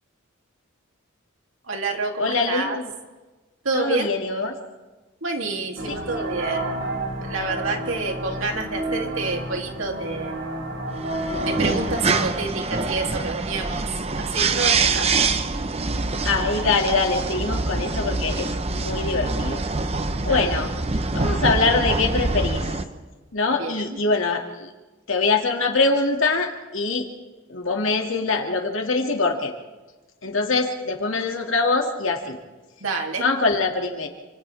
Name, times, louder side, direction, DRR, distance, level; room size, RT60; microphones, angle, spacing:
voice 1, 1.7-2.8 3.6-4.1 5.2-6.7 7.2-10.4 11.4-13.8 14.2-15.3 20.3-20.5 23.6-24.0 32.8-33.2, right 3 dB, 80° right, 2 dB, 2.9 m, -28 dB
voice 2, 2.2-2.9 3.7-4.5 5.9-6.3 16.2-19.6 20.2-20.7 21.1-22.6 23.3-24.7 25.1-27.1 27.5-29.5 30.2-32.4 33.2-34.1, left 3 dB, 75° left, 2 dB, 2.3 m, -23 dB
sound 1, 5.8-12.1, right 1 dB, 65° right, 4.7 m, -30 dB
sound 2, 10.9-22.8, right 3 dB, 30° right, 0.9 m, -25 dB
28.5 x 26.0 x 3.5 m, 1.2 s
head